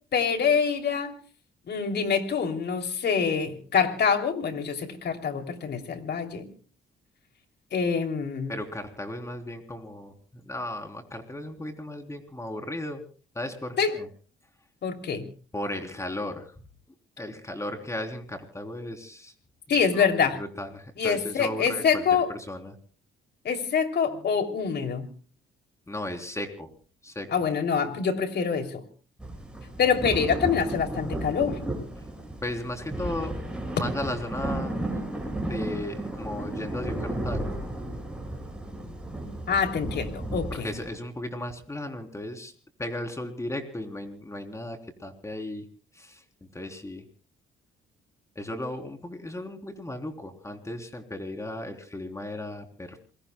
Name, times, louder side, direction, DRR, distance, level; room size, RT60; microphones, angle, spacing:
voice 1, 0.1-1.1 1.7-6.5 7.7-8.5 13.8-13.9 14.8-15.3 19.7-20.4 21.0-22.3 23.4-25.1 27.3-28.8 29.8-31.6 39.5-40.7, left 6 dB, 60° left, 5 dB, 3.2 m, -25 dB
voice 2, 8.5-13.0 13.3-14.1 15.5-16.5 17.2-19.3 19.9-22.0 22.3-22.8 25.9-26.7 27.0-27.3 32.4-33.4 33.7-34.8 35.4-37.6 40.5-42.5 42.8-45.7 45.9-47.1 48.4-53.0, left 1 dB, 15° left, 4 dB, 3.7 m, -35 dB
sound 1, 29.2-41.0, right 1 dB, 5° right, 7.2 m, -34 dB
28.0 x 22.0 x 2.3 m, 0.39 s
cardioid pair, 90°, 20 cm